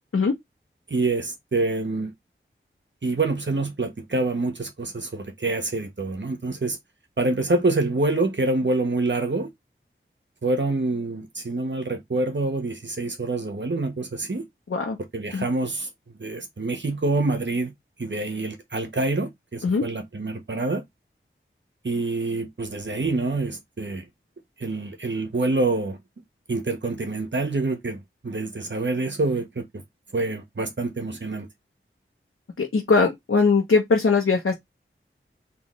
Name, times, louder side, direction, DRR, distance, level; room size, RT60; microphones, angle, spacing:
voice 1, 0.9-2.1 3.0-6.8 7.2-9.5 10.4-14.4 15.1-15.9 16.2-17.7 18.0-20.8 21.8-24.0 24.6-26.0 26.5-29.8 30.1-31.5, right 2 dB, 60° right, 1.5 m, -26 dB
voice 2, 32.6-34.5, left 4 dB, 85° left, 1.1 m, -20 dB
4.1 x 3.4 x 3.2 m
wide cardioid pair, 45°, 21 cm